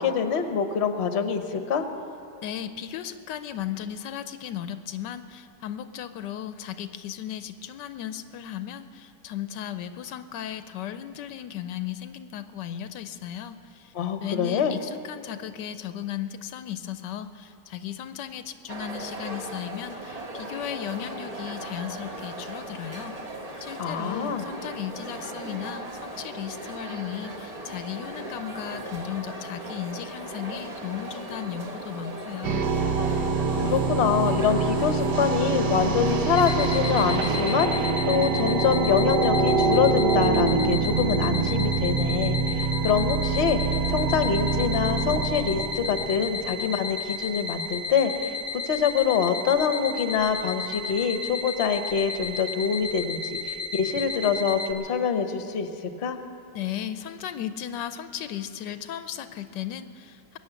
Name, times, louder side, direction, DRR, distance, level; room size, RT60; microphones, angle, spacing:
voice 1, 0.0-1.9 13.9-14.8 23.8-24.4 33.6-43.6 43.9-48.4 48.6-55.7 56.0-56.2, left 6 dB, 45° left, 7 dB, 1.1 m, -25 dB
voice 2, 2.4-13.9 14.2-23.2 23.6-32.7 56.5-60.4, left 10 dB, 85° left, 11 dB, 1.3 m, -36 dB
sound 1, 18.7-37.9, right 1 dB, 25° right, 1.0 m, -38 dB
sound 2, 32.4-46.5, right 4 dB, 70° right, 1.5 m, -25 dB
sound 3, 36.3-54.7, left 4 dB, 30° left, 0.6 m, -33 dB
22.0 x 9.2 x 7.0 m, 2.7 s
omnidirectional pair, 1.9 m